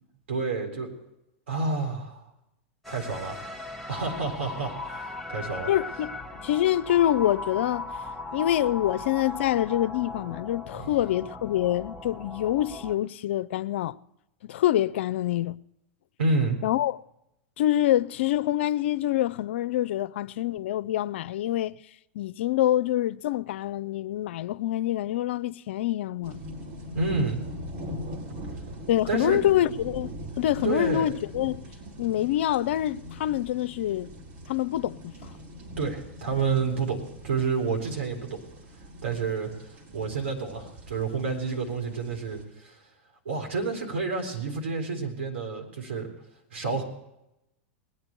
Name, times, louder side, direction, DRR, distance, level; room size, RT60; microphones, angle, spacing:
voice 1, 0.3-0.9 1.5-2.2 2.9-3.4 3.9-5.7 10.7-10.9 16.2-16.6 26.9-27.4 29.1-29.4 30.6-31.1 35.8-38.4 39.0-42.8 43.3-46.1 46.5-46.8, right 4 dB, 85° right, 3.9 m, -29 dB
sound 1, 2.8-13.0, left 2 dB, ahead, 1.1 m, -38 dB
voice 2, 5.7-6.1 6.4-7.9 8.3-14.0 14.4-15.6 16.6-17.0 17.6-21.8 22.1-26.4 28.9-30.1 30.4-31.7 32.0-34.1 34.5-35.3, left 13 dB, 70° left, 0.5 m, -26 dB
sound 2, 26.2-42.4, equal, 50° right, 4.5 m, -41 dB
21.0 x 9.6 x 4.5 m
hypercardioid pair, 115°, 7 cm